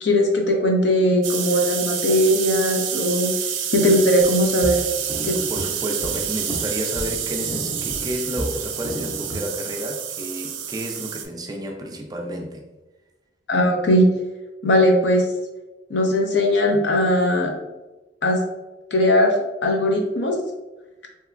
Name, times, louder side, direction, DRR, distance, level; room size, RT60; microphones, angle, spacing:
voice 1, 0.0-3.3 3.7-4.8 5.2-5.4 13.5-14.0 14.6-15.3 15.9-17.5 18.2-18.4 18.9-20.4, left 1 dB, 65° left, 0.6 m, -19 dB
sound 1, 1.2-11.2, right 9 dB, 85° right, 0.4 m, -28 dB
sound 2, 4.2-9.5, equal, 25° left, 0.7 m, -33 dB
voice 2, 5.5-12.6, right 1 dB, 20° right, 0.3 m, -31 dB
3.3 x 2.9 x 2.4 m
head